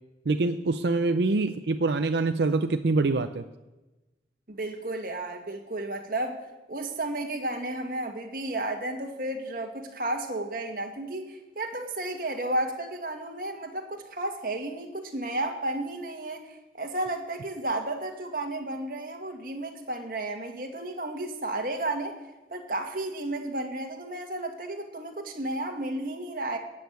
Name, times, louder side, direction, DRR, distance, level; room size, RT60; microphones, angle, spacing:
voice 1, 0.3-3.4, right 3 dB, 75° right, 7 dB, 0.5 m, -25 dB
voice 2, 4.5-6.4 6.7-22.2 22.5-26.6, right 2 dB, 50° right, 2 dB, 1.9 m, -33 dB
16.0 x 6.6 x 9.4 m, 1.1 s
head